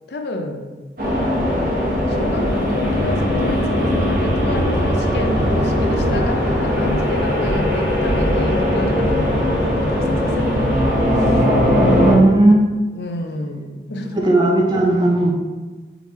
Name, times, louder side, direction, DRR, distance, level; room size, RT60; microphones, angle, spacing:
voice 1, 0.1-0.7 2.1-11.5 12.9-14.2, left 1 dB, 70° left, 4 dB, 0.5 m, -30 dB
sound 1, 1.0-12.2, equal, 50° right, 1.1 m, -19 dB
voice 2, 11.8-12.6 14.1-15.3, right 2 dB, 25° right, 1 dB, 0.5 m, -15 dB
4.9 x 3.3 x 3.1 m, 1.3 s
head